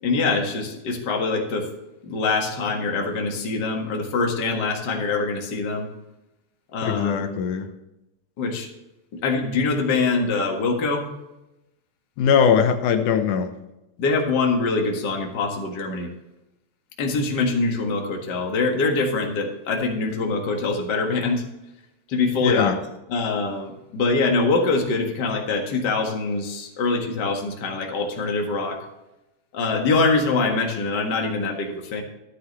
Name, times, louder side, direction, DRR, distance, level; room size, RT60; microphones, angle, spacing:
voice 1, 0.0-1.7 2.0-5.9 6.7-7.2 8.4-8.7 9.1-11.1 14.0-16.1 17.0-21.4 22.1-22.8 23.1-28.8 29.5-32.0, left 3 dB, 40° left, 2 dB, 1.9 m, -24 dB
voice 2, 6.8-7.7 12.2-13.5 22.4-22.8, left 7 dB, 85° left, 6 dB, 2.4 m, -20 dB
13.0 x 9.5 x 3.2 m, 0.94 s
omnidirectional pair, 3.5 m